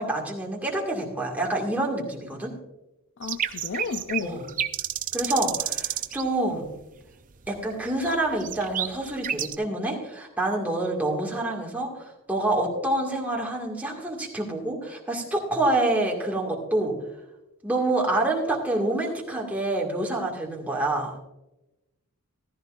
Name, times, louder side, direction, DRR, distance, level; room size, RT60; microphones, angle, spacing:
voice 1, 0.0-2.5 4.2-4.4 5.1-6.7 7.5-16.9 17.6-21.2, right 2 dB, 10° right, 2.1 m, -27 dB
voice 2, 3.2-4.4, left 5 dB, 60° left, 0.5 m, -32 dB
sound 1, 3.2-6.2 6.5-7.0 7.4-9.5, right 10 dB, 40° right, 0.5 m, -30 dB
15.0 x 13.5 x 2.6 m
head